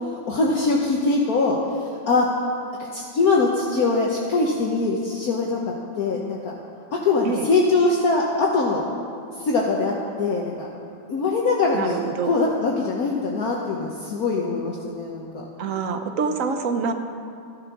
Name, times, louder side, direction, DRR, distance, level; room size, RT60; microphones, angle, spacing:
voice 1, 0.1-2.3 2.9-5.6 6.0-6.5 6.9-8.8 9.4-9.9 10.2-10.7 11.1-15.4, left 3 dB, 55° left, -2 dB, 1.5 m, -22 dB
voice 2, 11.7-12.5 15.6-16.9, right 5 dB, 55° right, 7 dB, 1.1 m, -26 dB
14.5 x 10.5 x 6.1 m, 2.4 s
omnidirectional pair, 2.0 m